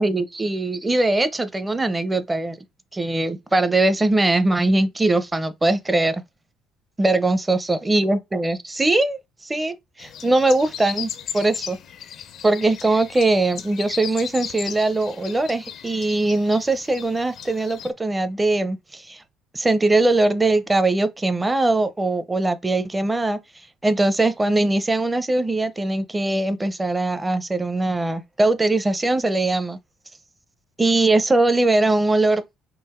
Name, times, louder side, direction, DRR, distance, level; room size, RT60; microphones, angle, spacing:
voice 1, 0.0-2.6 2.9-6.2 7.0-11.8 12.4-19.2 19.5-23.4 23.8-29.8 30.8-32.4, right 2 dB, 15° right, 0.7 m, -21 dB
sound 1, 10.0-17.9, left 9 dB, 55° left, 0.6 m, -36 dB
3.9 x 2.8 x 4.3 m
cardioid pair, 100°, 0 cm